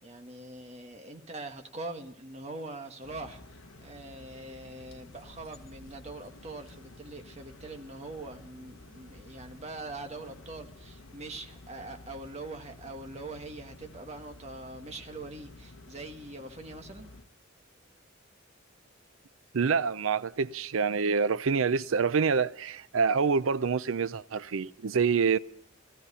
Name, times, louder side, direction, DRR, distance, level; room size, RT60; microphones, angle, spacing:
voice 1, 0.0-17.1, right 2 dB, 30° right, 1.5 m, -43 dB
sound 1, 3.0-17.3, left 2 dB, 85° left, 1.0 m, -52 dB
voice 2, 19.5-25.4, right 5 dB, 80° right, 0.5 m, -26 dB
17.5 x 14.5 x 5.5 m
head